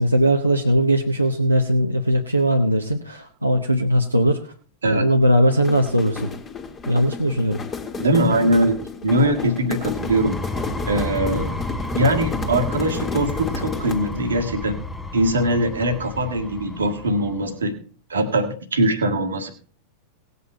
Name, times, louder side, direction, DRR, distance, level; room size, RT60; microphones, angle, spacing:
voice 1, 0.0-4.5 4.8-6.3 6.9-7.6, equal, 90° right, 0 dB, 1.0 m, -19 dB
sound 1, 5.5-14.2, left 5 dB, 20° left, 1.8 m, -32 dB
voice 2, 8.0-8.8 9.0-10.4 10.9-11.6 11.9-14.8 15.1-17.8 18.1-19.5, right 1 dB, 70° right, 7 dB, 1.7 m, -21 dB
sound 2, 9.8-17.4, left 1 dB, 5° left, 1.2 m, -31 dB
18.0 x 8.3 x 4.4 m, 0.42 s
figure-of-eight pair, 90°, 0 cm